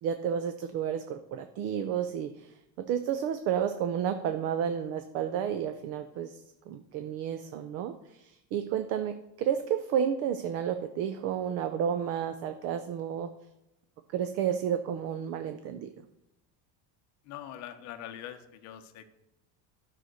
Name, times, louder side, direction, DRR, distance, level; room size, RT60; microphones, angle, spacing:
voice 1, 0.0-6.4 6.7-13.3 14.1-15.9, right 8 dB, 35° right, 9 dB, 0.4 m, -31 dB
voice 2, 17.2-19.1, left 11 dB, 40° left, 8 dB, 0.9 m, -43 dB
12.0 x 5.7 x 6.3 m, 0.90 s
cardioid pair, 180°, 43 cm